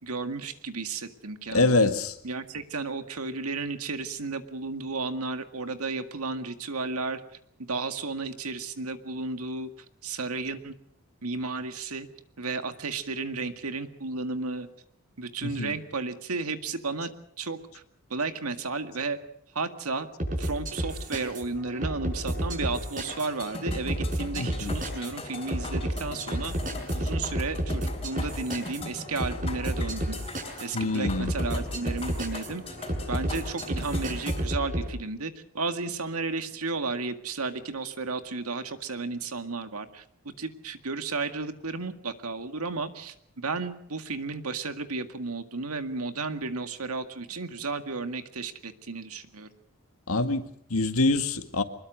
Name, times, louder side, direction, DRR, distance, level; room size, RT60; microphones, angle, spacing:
voice 1, 0.0-1.9 2.2-7.2 7.7-9.7 10.0-10.7 11.2-12.1 12.4-14.7 15.2-17.1 17.4-17.8 18.1-19.2 19.5-20.1 20.4-26.5 26.9-30.2 30.6-32.6 33.1-40.0 40.4-49.5, right 3 dB, 90° right, 1.9 m, -33 dB
voice 2, 1.5-2.1 15.4-15.8 24.4-24.7 30.7-31.3 50.1-51.6, left 2 dB, 80° left, 2.0 m, -25 dB
sound 1, 20.2-34.9, equal, 35° right, 5.8 m, -31 dB
sound 2, 23.1-34.4, left 3 dB, 25° left, 3.9 m, -42 dB
24.0 x 21.0 x 6.4 m
head